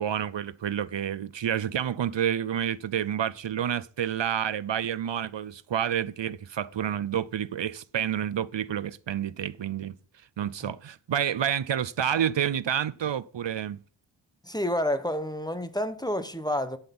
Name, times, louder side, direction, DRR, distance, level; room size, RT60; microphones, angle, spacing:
voice 1, 0.0-9.9 10.4-13.8, right 9 dB, 75° right, 0.6 m, -29 dB
voice 2, 14.4-16.8, left 1 dB, 10° left, 1.1 m, -29 dB
11.5 x 5.7 x 5.9 m
wide cardioid pair, 45°, 44 cm